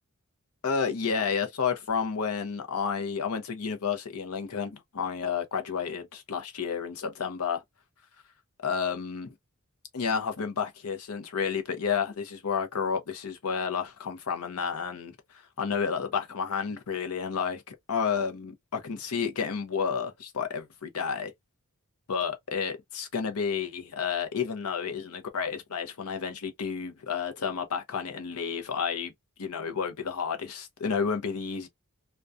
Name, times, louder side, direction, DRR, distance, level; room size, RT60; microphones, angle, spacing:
voice 1, 0.6-7.6 8.6-9.3 9.9-21.3 22.1-29.1 29.4-31.7, left 6 dB, 75° left, 0.6 m, -31 dB
2.2 x 2.2 x 2.5 m
head